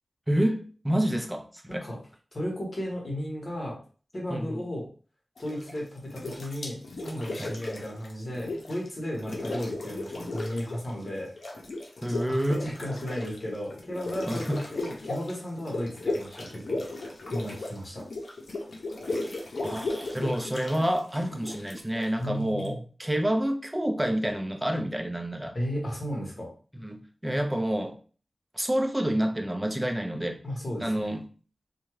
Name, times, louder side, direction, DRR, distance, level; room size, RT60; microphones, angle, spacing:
voice 1, 0.3-1.8 4.3-4.6 7.4-7.6 12.0-12.6 14.3-14.6 19.6-25.5 26.8-28.0 28.5-30.4 30.8-31.3, right 1 dB, 10° right, 0.4 m, -28 dB
voice 2, 2.3-3.8 4.1-4.9 5.4-6.8 7.0-11.3 12.1-16.8 17.3-18.0 22.2-22.8 25.5-26.5 30.4-31.1, equal, 45° left, 1.3 m, -34 dB
sound 1, 5.4-5.8 6.1-8.9 9.1-10.9 11.1-22.7, left 2 dB, 80° left, 0.6 m, -36 dB
2.6 x 2.3 x 3.1 m
wide cardioid pair, 85°, 0 cm